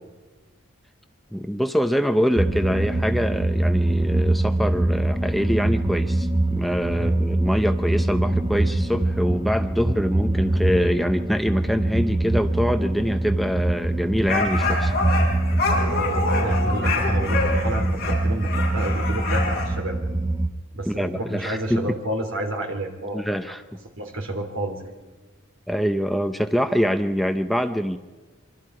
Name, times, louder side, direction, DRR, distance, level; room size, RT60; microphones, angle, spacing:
voice 1, 1.3-14.9 20.9-21.9 23.1-23.6 25.7-28.0, equal, ahead, 7 dB, 0.6 m, -24 dB
sound 1, 2.4-20.5, right 1 dB, 20° right, 1.0 m, -24 dB
sound 2, 14.3-19.7, left 3 dB, 45° left, 7.5 m, -26 dB
voice 2, 15.7-20.0 20.7-23.2 24.0-24.8, right 1 dB, 70° right, 3 dB, 3.7 m, -30 dB
26.0 x 24.5 x 4.8 m, 1.2 s
head